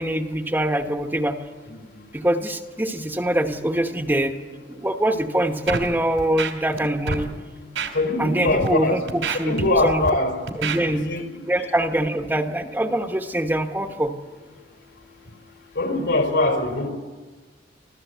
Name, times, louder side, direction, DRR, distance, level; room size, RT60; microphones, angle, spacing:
voice 1, 0.0-1.4 2.1-4.4 4.7-7.3 8.2-10.1 10.6-11.0 11.4-14.1, right 1 dB, 10° right, 5 dB, 1.1 m, -24 dB
Scratching (performance technique), 5.7-5.9 6.2-6.8 7.1-7.2 7.8-7.9 8.5-8.7 9.1-10.1 10.5-10.8, right 4 dB, 90° right, 3.1 m, -27 dB
voice 2, 7.9-9.0 9.4-10.3 10.8-11.7 15.7-16.9, left 2 dB, 70° left, 5 dB, 4.3 m, -22 dB
26.5 x 15.0 x 8.1 m, 1.4 s
head